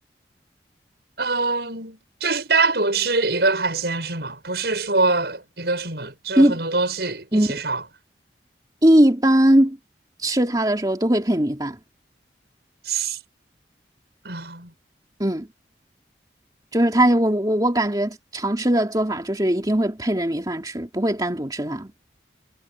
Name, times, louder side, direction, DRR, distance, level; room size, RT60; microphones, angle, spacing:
voice 1, 1.2-7.8 12.9-13.2 14.2-14.7, right 3 dB, 70° right, 6.1 m, -24 dB
voice 2, 8.8-9.8 10.2-11.8 15.2-15.5 16.7-21.9, right 1 dB, 20° right, 3.0 m, -20 dB
head